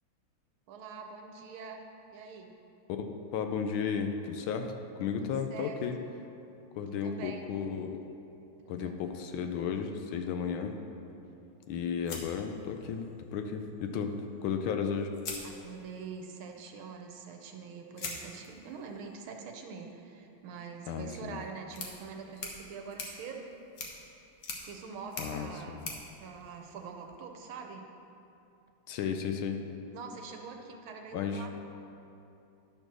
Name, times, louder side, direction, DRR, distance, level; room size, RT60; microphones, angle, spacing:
voice 1, 0.7-1.8 2.1-2.5 5.2-5.8 7.0-7.6 8.6-8.9 15.4-23.5 24.6-27.9 29.9-31.5, right 5 dB, 75° right, 3 dB, 1.5 m, -44 dB
voice 2, 2.9-6.0 6.8-8.0 8.7-10.8 11.7-13.1 13.3-15.1 20.9-21.4 25.2-25.8 28.9-29.6 31.1-31.5, left 6 dB, 75° left, 5 dB, 1.3 m, -34 dB
sound 1, 12.1-13.2 14.5-14.6 15.1-16.1 18.0-27.2, left 3 dB, 50° left, 1.3 m, -45 dB
11.0 x 4.4 x 6.1 m, 2.8 s
omnidirectional pair, 2.4 m